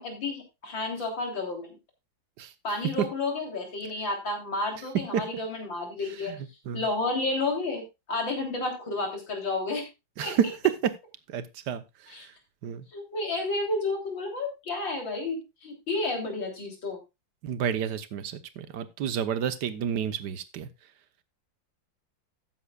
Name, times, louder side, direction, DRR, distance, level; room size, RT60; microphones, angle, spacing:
voice 1, 0.0-1.8 2.6-6.3 6.7-9.9 10.2-10.4 12.1-12.3 12.9-17.0, left 2 dB, 80° left, 2 dB, 4.1 m, -31 dB
voice 2, 6.3-6.8 10.2-10.9 11.3-11.8 12.2-12.3 12.6-12.9 17.4-20.7, right 9 dB, 65° right, 13 dB, 1.5 m, -29 dB
14.0 x 9.9 x 2.4 m, 0.24 s
omnidirectional pair, 2.0 m